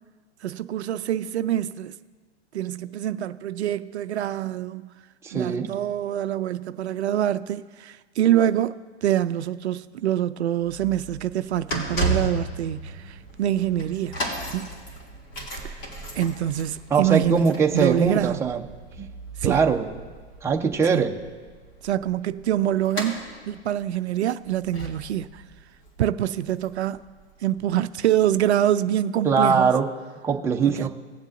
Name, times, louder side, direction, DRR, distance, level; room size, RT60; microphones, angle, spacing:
voice 1, 0.4-1.9 2.5-4.9 5.3-14.2 14.5-14.7 15.6-15.9 16.2-18.4 19.4-19.6 20.9-21.0 21.8-25.4 26.0-27.0 27.4-29.7 30.7-30.9, right 11 dB, 70° right, 0.5 m, -25 dB
voice 2, 5.2-5.7 16.9-18.6 19.0-19.1 19.4-19.8 20.4-21.1 29.2-29.9 30.2-30.9, right 5 dB, 10° right, 0.7 m, -21 dB
sound 1, 10.6-27.6 28.2-28.3, right 2 dB, 35° left, 2.6 m, -35 dB
19.0 x 7.2 x 2.6 m
hypercardioid pair, 120°, 34 cm